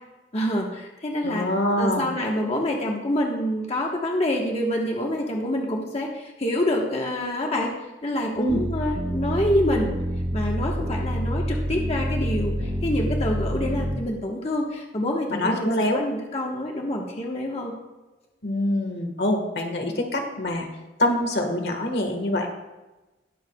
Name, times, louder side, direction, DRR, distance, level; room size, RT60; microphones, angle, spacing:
voice 1, 0.3-1.5 1.8-7.7 8.0-9.9 10.3-17.7, left 1 dB, 35° left, -1 dB, 1.2 m, -26 dB
voice 2, 1.2-2.1 8.4-8.6 15.3-16.0 18.4-20.7 21.0-22.5, left 1 dB, 65° left, 3 dB, 1.5 m, -25 dB
sound 1, 8.5-14.0, equal, 60° right, 1.3 m, -27 dB
19.5 x 7.2 x 2.3 m, 1.1 s
head